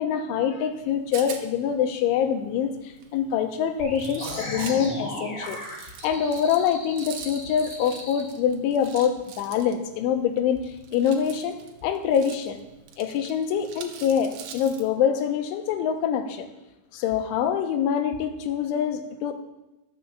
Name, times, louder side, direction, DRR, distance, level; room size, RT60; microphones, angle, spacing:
voice 1, 0.0-2.7 3.1-5.6 6.0-10.6 10.9-11.6 11.8-12.6 13.0-16.5 16.9-19.3, left 8 dB, 90° left, 7 dB, 3.4 m, -25 dB
Rattle, 0.7-14.9, right 8 dB, 80° right, 2.0 m, -45 dB
sound 1, 3.8-8.2, left 1 dB, 30° left, 3.3 m, -36 dB
12.0 x 7.0 x 7.0 m, 0.97 s
omnidirectional pair, 5.3 m